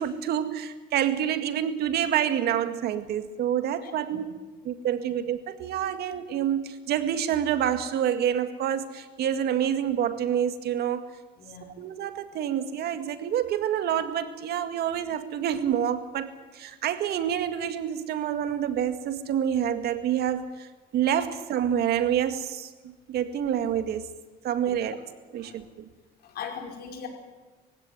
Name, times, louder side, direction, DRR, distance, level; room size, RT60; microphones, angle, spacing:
voice 1, 0.0-4.3 4.6-11.1 11.8-24.1 24.4-25.0 25.3-25.9, right 9 dB, 70° right, 9 dB, 2.0 m, -27 dB
voice 2, 3.8-4.2 11.4-11.8 24.6-24.7 25.4-25.6 26.2-27.1, left 6 dB, 65° left, 3 dB, 4.9 m, -40 dB
22.0 x 16.0 x 9.4 m, 1.3 s
cardioid pair, 110°, 17 cm